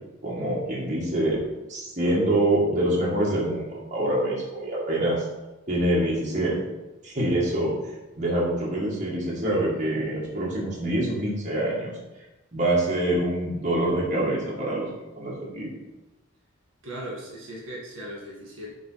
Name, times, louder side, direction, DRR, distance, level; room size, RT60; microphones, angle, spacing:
voice 1, 0.2-1.4 1.7-5.2 5.7-6.6 7.0-7.7 8.2-11.9 12.5-14.9 15.2-15.7, right 1 dB, 35° right, -6 dB, 2.1 m, -25 dB
voice 2, 16.8-18.7, right 1 dB, 75° right, -3 dB, 1.9 m, -38 dB
7.6 x 3.7 x 5.8 m, 1.1 s
head